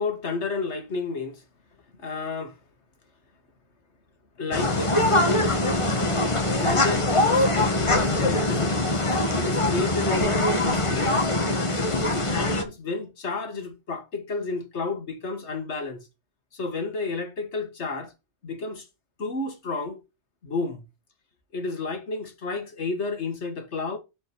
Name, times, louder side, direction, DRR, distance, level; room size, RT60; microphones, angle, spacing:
voice 1, 0.0-1.4 2.0-2.6 4.4-5.4 6.5-11.1 12.1-16.1 16.5-18.1 18.4-18.9 19.2-20.0 20.4-20.8 21.5-24.0, left 3 dB, 85° left, 1.9 m, -31 dB
sound 1, 4.5-12.6, left 2 dB, 30° left, 1.3 m, -23 dB
6.6 x 5.5 x 4.8 m
omnidirectional pair, 1.1 m